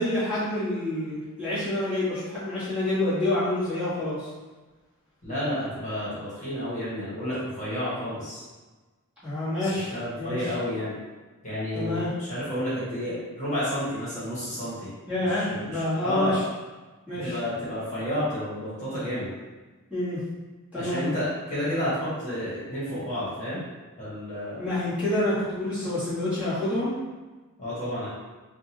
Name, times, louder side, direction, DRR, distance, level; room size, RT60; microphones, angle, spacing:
voice 1, 0.0-4.3 9.2-9.9 10.2-10.5 11.7-12.1 15.1-16.4 17.1-17.4 19.9-20.2 20.7-21.0 24.6-27.0, left 1 dB, 5° right, -13 dB, 1.5 m, -27 dB
voice 2, 5.2-8.4 9.6-11.0 11.4-14.9 15.2-16.4 17.2-19.3 20.7-23.6 24.0-24.6 27.6-28.1, left 1 dB, 35° left, -10 dB, 1.3 m, -31 dB
3.9 x 2.3 x 2.8 m, 1.3 s
head